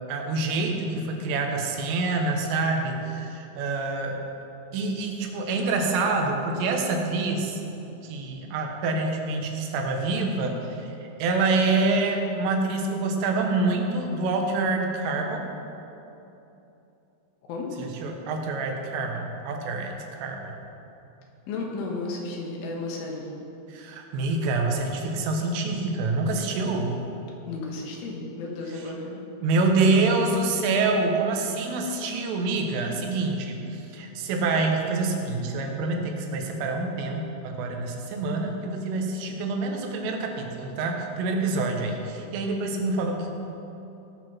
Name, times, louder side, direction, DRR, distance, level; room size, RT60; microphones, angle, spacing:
voice 1, 0.1-4.2 4.7-7.6 8.0-10.9 11.2-15.5 17.8-20.6 23.7-27.0 28.7-28.9 29.4-43.3, right 3 dB, 85° right, 2 dB, 3.8 m, -26 dB
voice 2, 21.5-23.3 27.5-29.2, left 3 dB, 80° left, -1 dB, 4.1 m, -33 dB
18.5 x 6.1 x 6.1 m, 3.0 s
omnidirectional pair, 5.6 m